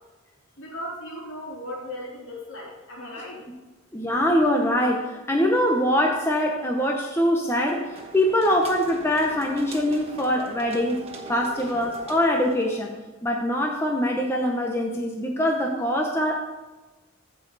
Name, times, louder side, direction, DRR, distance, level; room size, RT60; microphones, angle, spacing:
voice 1, 0.6-3.4, left 1 dB, 65° left, -4 dB, 3.5 m, -37 dB
voice 2, 3.9-11.0 11.3-12.9 13.2-16.4, equal, 10° left, 0 dB, 0.8 m, -23 dB
sound 1, 7.5-13.0, right 3 dB, 30° right, 1.2 m, -42 dB
15.0 x 5.4 x 4.0 m, 1.2 s
head